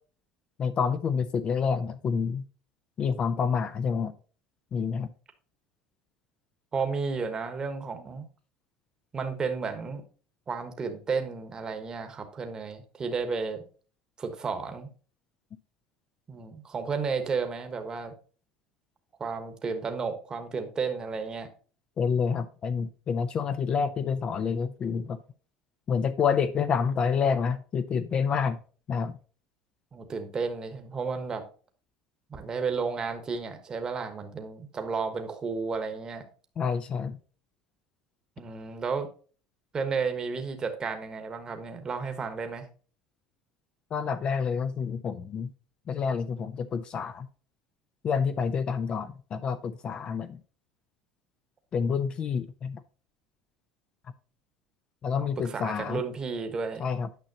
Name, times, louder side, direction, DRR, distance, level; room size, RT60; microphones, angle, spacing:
voice 1, 0.6-2.4 3.0-4.1 4.7-5.1 22.0-25.2 25.9-28.6 28.9-29.2 36.6-37.2 43.9-45.5 45.9-47.3 48.0-50.4 51.7-52.8 55.0-56.0 56.8-57.1, left 6 dB, 35° left, 11 dB, 0.5 m, -28 dB
voice 2, 6.7-8.2 9.1-10.0 10.5-13.6 14.2-14.9 16.3-18.1 19.2-21.5 29.9-31.4 32.3-36.2 38.4-39.1 39.7-42.7 55.2-56.8, right 5 dB, 25° right, 6 dB, 1.2 m, -32 dB
9.2 x 5.6 x 2.8 m, 0.39 s
supercardioid pair, 110°, 3 cm